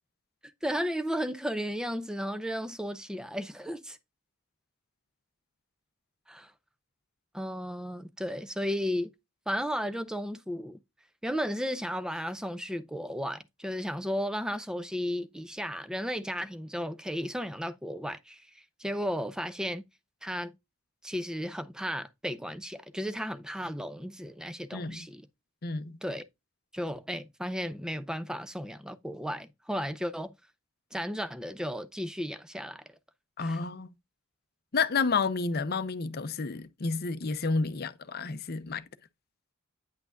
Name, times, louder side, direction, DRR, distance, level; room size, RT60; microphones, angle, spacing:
voice 1, 0.6-4.0 6.3-6.5 7.3-9.1 9.5-10.8 11.2-19.8 20.2-20.5 21.0-25.2 26.0-26.2 26.7-30.3 30.9-32.8 33.4-33.6, equal, 5° right, 0.5 m, -34 dB
voice 2, 24.7-25.1 25.6-26.0 33.4-33.9 34.7-38.8, left 4 dB, 45° left, 0.6 m, -30 dB
9.4 x 5.9 x 2.4 m
head